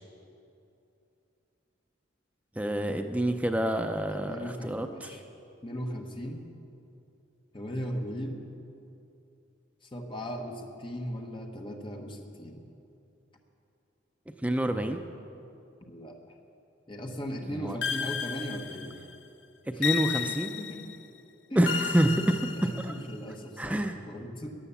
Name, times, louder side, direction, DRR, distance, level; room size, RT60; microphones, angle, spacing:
voice 1, 2.6-5.2 14.4-15.0 17.4-17.8 19.7-20.5 21.6-22.9 23.6-24.0, right 1 dB, 5° right, 5 dB, 0.5 m, -28 dB
voice 2, 4.1-5.2 5.6-6.4 7.5-8.4 9.9-12.6 15.9-16.2 16.9-19.0 20.2-20.8 21.5-21.9 22.4-23.8 24.1-24.5, equal, 25° left, 2 dB, 1.1 m, -38 dB
sound 1, 17.8-19.2 19.8-21.0 21.7-23.2, left 7 dB, 60° left, 0.6 m, -33 dB
14.0 x 10.0 x 7.0 m, 2.7 s
head